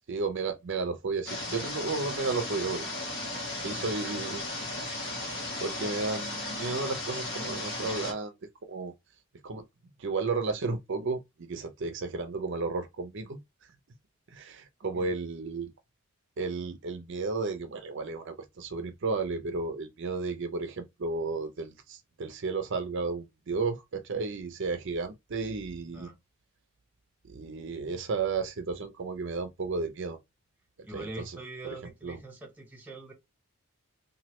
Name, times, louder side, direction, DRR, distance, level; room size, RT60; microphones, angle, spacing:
voice 1, 0.1-2.9 3.5-4.4 5.6-8.3 8.6-8.9 9.4-9.6 10.0-13.4 14.3-15.7 16.4-26.1 27.2-30.2 30.9-31.4 32.0-32.2, right 4 dB, 55° right, 0.5 m, -33 dB
sound 1, 1.3-8.1, left 2 dB, 55° left, 1.1 m, -35 dB
voice 2, 30.8-33.1, right 2 dB, 10° right, 0.6 m, -43 dB
3.1 x 2.3 x 2.9 m
head